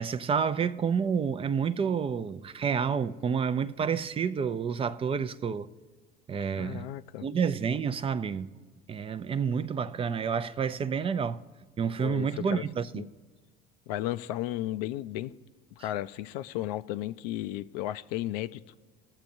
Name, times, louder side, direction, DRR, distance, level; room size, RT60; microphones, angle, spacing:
voice 1, 0.0-5.7 6.3-6.9 7.2-8.5 8.9-11.4 11.8-13.1, right 6 dB, 30° right, 0.4 m, -29 dB
voice 2, 6.6-7.3 12.0-12.6 12.9-13.1 13.9-15.3 15.8-18.6, left 14 dB, 80° left, 0.4 m, -34 dB
19.5 x 7.3 x 2.6 m
hypercardioid pair, 80°, 20 cm